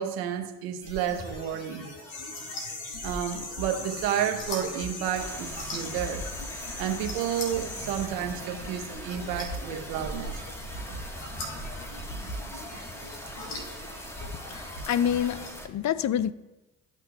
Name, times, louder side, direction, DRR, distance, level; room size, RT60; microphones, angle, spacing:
voice 1, 0.0-1.9 3.0-6.2 6.8-10.4, right 9 dB, 85° right, 0.9 m, -31 dB
sound 1, 0.8-15.5, left 1 dB, 85° left, 1.9 m, -40 dB
sound 2, 2.1-8.1, left 3 dB, 65° left, 1.9 m, -40 dB
sound 3, 5.1-15.7, equal, 5° left, 1.3 m, -41 dB
voice 2, 14.5-16.3, left 9 dB, 45° left, 0.5 m, -27 dB
14.0 x 6.0 x 2.3 m
hypercardioid pair, 50°, 40 cm